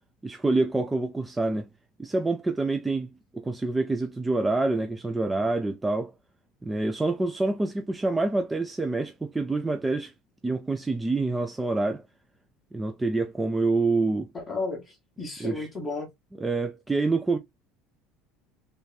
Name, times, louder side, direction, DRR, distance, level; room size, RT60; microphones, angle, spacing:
voice 1, 0.2-1.7 2.0-3.1 3.3-6.1 6.6-10.1 10.4-12.0 12.7-14.3 15.4-15.7 16.4-17.4, right 3 dB, 10° right, 0.4 m, -26 dB
voice 2, 14.3-16.1, left 3 dB, 20° left, 1.1 m, -33 dB
3.4 x 2.8 x 3.9 m
cardioid pair, 150°, 0 cm